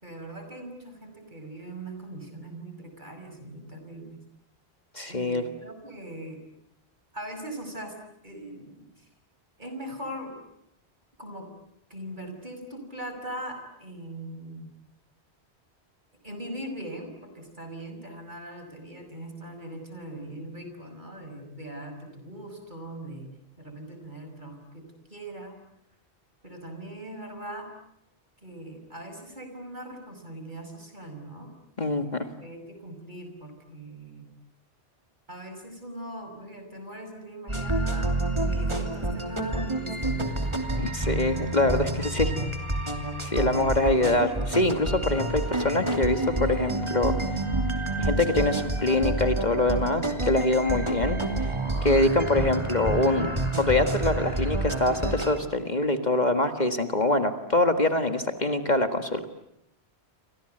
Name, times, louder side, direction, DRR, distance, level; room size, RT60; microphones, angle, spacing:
voice 1, 0.0-4.2 5.1-6.4 7.1-8.0 8.2-9.1 9.6-10.4 11.2-11.5 11.9-14.7 16.2-25.6 26.4-27.7 28.4-31.5 32.4-34.3 35.3-40.6 41.9-42.6, right 1 dB, 45° right, 6 dB, 6.0 m, -40 dB
voice 2, 4.9-5.4 31.8-32.3 40.8-42.3 43.2-47.2 48.0-51.5 51.8-53.3 53.6-59.3, left 2 dB, 40° left, 8 dB, 1.9 m, -24 dB
sound 1, 37.5-55.4, right 2 dB, 25° right, 3.1 m, -28 dB
29.0 x 25.5 x 7.9 m, 0.80 s
omnidirectional pair, 1.1 m